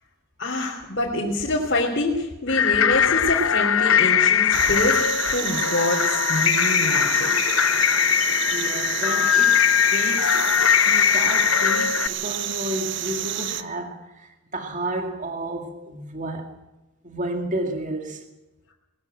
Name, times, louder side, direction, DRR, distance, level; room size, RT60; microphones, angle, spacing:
voice 1, 0.4-7.3, left 1 dB, 50° left, 3.4 m, -26 dB
sound 1, 2.5-12.1, left 9 dB, 70° left, 0.7 m, -20 dB
sound 2, 4.5-13.6, right 11 dB, 55° right, 1.0 m, -30 dB
voice 2, 8.3-10.5 10.9-16.5 17.0-18.2, right 1 dB, 35° right, 2.2 m, -32 dB
20.5 x 14.5 x 9.1 m
head